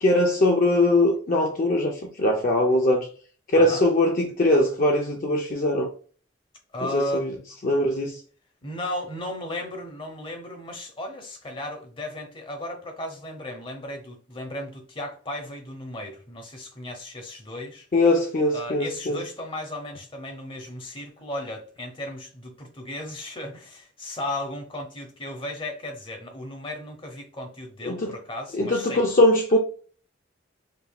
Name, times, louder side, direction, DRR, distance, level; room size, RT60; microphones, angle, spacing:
voice 1, 0.0-3.1 3.5-5.9 6.9-7.3 7.6-8.1 17.9-19.2 27.9-28.1 28.6-29.6, left 1 dB, 50° left, 0.6 m, -21 dB
voice 2, 3.5-3.9 6.7-7.3 8.6-17.9 18.5-29.0, left 1 dB, 30° left, 1.0 m, -35 dB
5.3 x 2.7 x 2.3 m
head